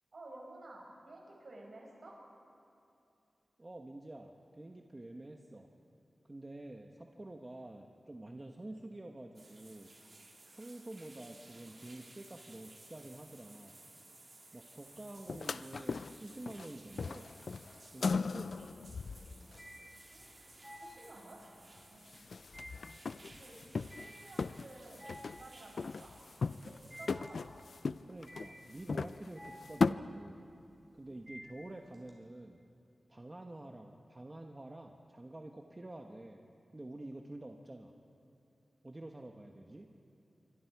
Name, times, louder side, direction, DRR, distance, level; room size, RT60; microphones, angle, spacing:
voice 1, 0.1-2.2 20.1-20.4 20.7-21.4 21.9-22.3 23.2-23.6 24.0-26.1 26.6-27.5, right 2 dB, 60° right, -2 dB, 5.9 m, -53 dB
voice 2, 3.6-5.7 6.3-9.9 10.5-13.8 14.5-17.3 17.9-18.6 28.0-30.4 30.9-32.6 33.1-36.4 36.7-37.9 38.8-39.9, right 1 dB, 25° right, 3 dB, 1.0 m, -48 dB
sound 1, 9.3-27.1, right 2 dB, 40° right, 3.4 m, -58 dB
sound 2, 15.3-16.7 16.9-19.6 21.8-21.9 22.1-24.1 24.4-25.5 25.8-26.8 27.1-29.9, left 4 dB, 70° left, 0.4 m, -37 dB
sound 3, 17.7-32.1, equal, ahead, 4.7 m, -54 dB
27.0 x 24.0 x 4.7 m, 2.7 s
wide cardioid pair, 100°, 0 cm